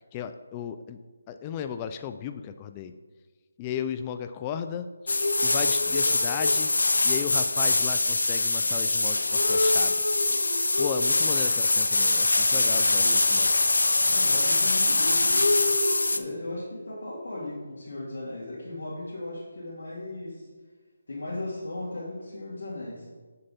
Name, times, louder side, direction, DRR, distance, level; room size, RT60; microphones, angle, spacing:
voice 1, 0.1-1.0 1.3-2.9 3.6-6.7 7.0-9.9 10.8-13.0 13.3-13.5, left 8 dB, 20° left, 9 dB, 0.3 m, -35 dB
sound 1, 5.1-16.2, left 2 dB, 80° left, 0.7 m, -23 dB
voice 2, 12.5-13.4 14.1-15.5 16.1-20.5 21.1-23.1, left 2 dB, 60° left, -8 dB, 2.5 m, -37 dB
8.0 x 6.6 x 4.2 m, 1.4 s
figure-of-eight pair, 165°, 0 cm